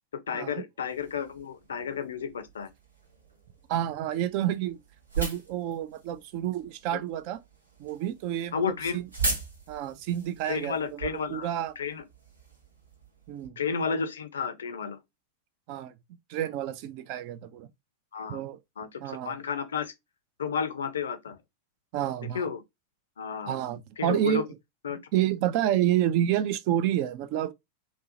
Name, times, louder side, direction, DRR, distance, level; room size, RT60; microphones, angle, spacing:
voice 1, 0.3-2.7 8.5-9.0 10.4-11.5 11.8-12.0 13.6-15.0 18.1-18.4 18.8-19.9 20.4-21.4 22.3-22.6 23.2-23.6 24.0-24.4 24.8-25.0, left 6 dB, 65° left, 0.4 m, -32 dB
sound 1, 0.9-13.5, right 4 dB, 80° right, 0.8 m, -39 dB
voice 2, 3.7-4.8 5.2-7.4 7.8-8.6 8.9-9.1 9.7-11.7 13.3-13.6 15.7-15.9 16.3-17.7 18.3-18.6 19.0-19.4 21.9-22.5 23.5-24.4 25.1-27.5, right 12 dB, 45° right, 0.3 m, -29 dB
2.6 x 2.0 x 2.7 m
figure-of-eight pair, 90°, 0 cm